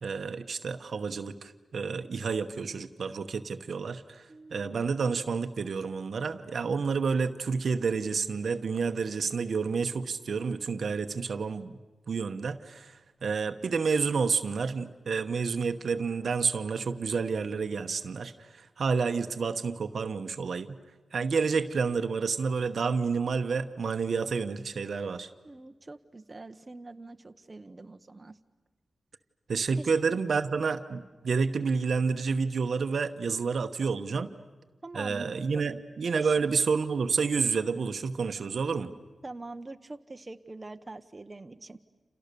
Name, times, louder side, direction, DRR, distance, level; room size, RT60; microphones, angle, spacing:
voice 1, 0.0-11.8 12.1-20.8 21.1-25.3 29.5-34.3 34.9-38.9, right 5 dB, 70° right, 9 dB, 1.0 m, -29 dB
voice 2, 4.3-4.8 25.4-28.4 29.8-29.9 34.3-34.4 34.8-35.6 36.1-36.3 38.8-39.0 39.2-41.8, right 2 dB, 30° right, 7 dB, 1.1 m, -44 dB
29.5 x 28.5 x 6.9 m, 1.2 s
wide cardioid pair, 80°, 0 cm